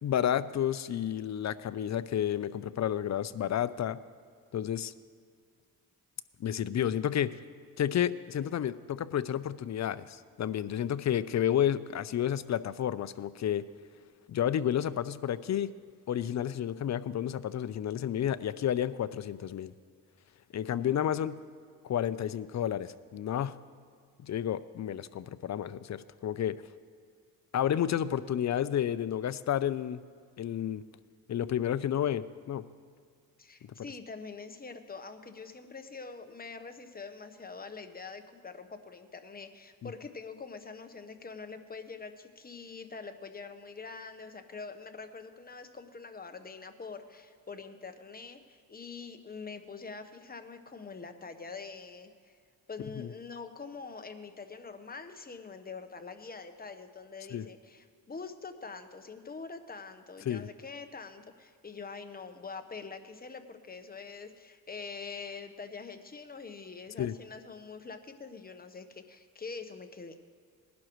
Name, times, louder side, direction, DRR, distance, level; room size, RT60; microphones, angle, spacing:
voice 1, 0.0-4.0 4.5-4.9 6.4-7.3 7.8-13.6 14.3-15.7 16.1-19.7 20.5-21.4 21.8-23.6 24.2-26.6 27.5-30.0 30.4-30.8 31.3-32.6 39.8-39.9 53.0-53.1 57.3-57.4 60.3-60.5 67.0-67.1, left 10 dB, 45° left, 15 dB, 0.5 m, -31 dB
voice 2, 33.4-52.4 52.7-70.2, left 4 dB, 25° left, 8 dB, 1.0 m, -44 dB
19.5 x 11.5 x 3.1 m, 2.1 s
cardioid pair, 85°, 37 cm